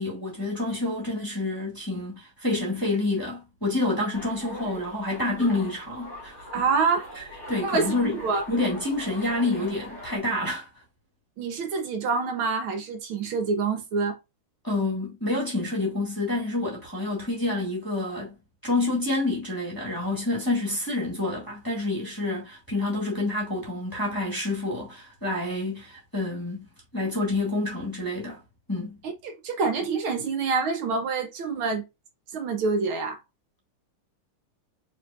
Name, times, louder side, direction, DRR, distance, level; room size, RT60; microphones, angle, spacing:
voice 1, 0.0-6.4 7.1-8.2 8.5-10.7 14.6-18.4 18.6-26.7 26.9-28.4 28.7-29.0, left 2 dB, 10° left, 1.4 m, -28 dB
sound 1, 4.1-10.2, left 1 dB, 40° right, 2.5 m, -42 dB
voice 2, 6.5-7.1 7.6-8.4 11.4-14.2 29.0-31.9 32.3-33.2, right 4 dB, 75° right, 1.7 m, -26 dB
4.9 x 3.4 x 2.3 m
omnidirectional pair, 2.4 m